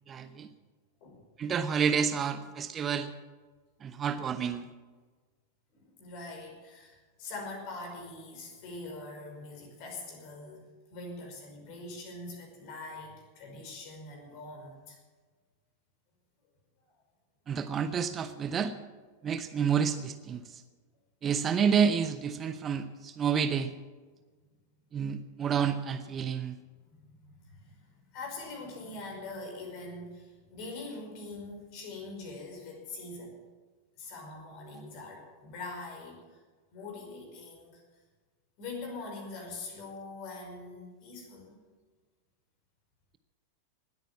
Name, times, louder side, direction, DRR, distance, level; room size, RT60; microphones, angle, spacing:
voice 1, 0.1-0.5 1.4-3.1 3.8-4.7 17.5-18.7 19.2-20.6 21.2-23.7 24.9-26.6, right 7 dB, 25° right, 11 dB, 0.8 m, -29 dB
voice 2, 5.7-10.6 10.9-15.0 26.9-33.3 34.0-36.4 36.7-37.8 38.6-41.6, left 3 dB, 45° left, 2 dB, 5.3 m, -43 dB
19.5 x 9.2 x 7.2 m, 1.4 s
figure-of-eight pair, 90°, 0 cm